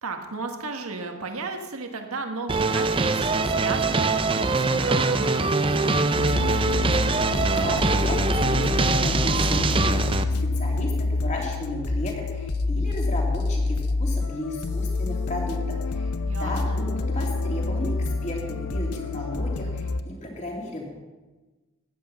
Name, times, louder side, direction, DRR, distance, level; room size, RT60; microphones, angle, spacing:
voice 1, 0.0-6.3 16.3-16.8, right 3 dB, 75° right, 4 dB, 1.6 m, -34 dB
sound 1, 2.5-10.2, right 3 dB, 25° right, 0.5 m, -23 dB
sound 2, 6.1-20.0, left 3 dB, 85° left, 0.8 m, -27 dB
voice 2, 7.5-16.1 16.4-20.8, left 1 dB, 30° left, -1 dB, 2.9 m, -34 dB
15.0 x 10.5 x 5.7 m, 1.2 s
head